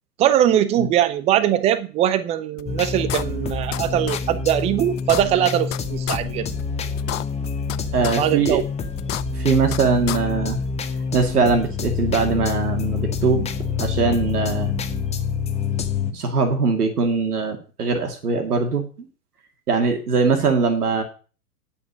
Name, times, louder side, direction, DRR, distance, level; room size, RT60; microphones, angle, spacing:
voice 1, 0.2-6.5 8.2-8.6, right 11 dB, 15° right, 15 dB, 0.5 m, -21 dB
sound 1, 2.6-2.7 3.1-3.8 4.1-4.2 4.6-4.7 5.0-5.8 6.1-6.2 6.6-6.7 7.0-7.8 8.0-8.2 8.6-8.7 9.0-9.8 10.1-10.2, left 14 dB, 55° left, 0.7 m, -29 dB
sound 2, 2.7-16.1, left 5 dB, 15° left, 1.0 m, -27 dB
voice 2, 7.9-8.6 9.3-10.6 11.1-13.5 13.8-14.8 16.1-18.8 19.7-21.0, right 4 dB, 75° right, 5 dB, 2.3 m, -21 dB
10.5 x 6.0 x 6.2 m, 0.37 s
figure-of-eight pair, 110°, 46 cm